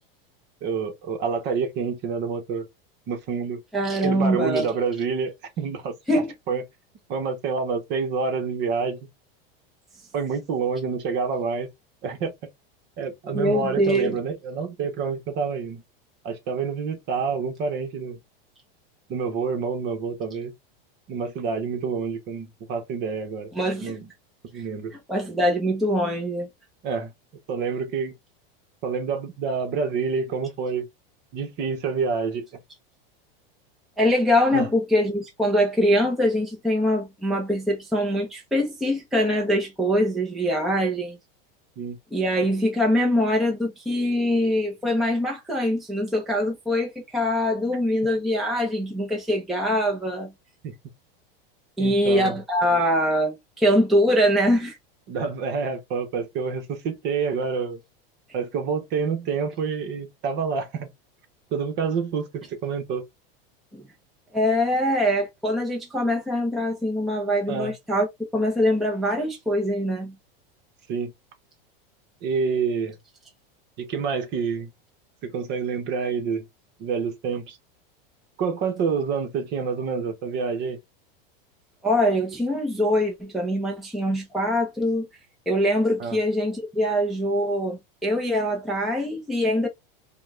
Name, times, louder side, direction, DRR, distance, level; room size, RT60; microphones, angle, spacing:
voice 1, 0.6-2.7 3.1-3.6 4.0-5.9 6.5-6.6 7.1-9.0 10.1-11.7 12.0-12.3 13.0-15.8 16.2-18.2 19.1-20.5 21.1-23.5 23.8-24.1 24.5-24.9 26.8-27.1 27.5-28.1 28.8-30.9 31.3-32.5 34.5-34.7 41.8-42.0 50.6-50.7 51.8-52.4 55.1-57.8 58.3-60.9 61.5-63.0 67.5-67.7 70.9-71.1 72.2-73.0 73.8-74.7 75.2-76.5 76.8-77.6 78.4-80.8 86.0-86.2, right 5 dB, 35° right, 1.2 m, -27 dB
voice 2, 3.7-4.7 6.1-6.3 13.3-14.2 23.5-23.9 25.1-26.5 34.0-41.2 42.1-50.3 51.8-54.8 63.7-63.8 64.3-68.1 68.3-70.2 81.8-85.1 85.5-89.7, equal, ahead, 0.8 m, -23 dB
5.0 x 2.4 x 2.4 m
supercardioid pair, 155°, 29 cm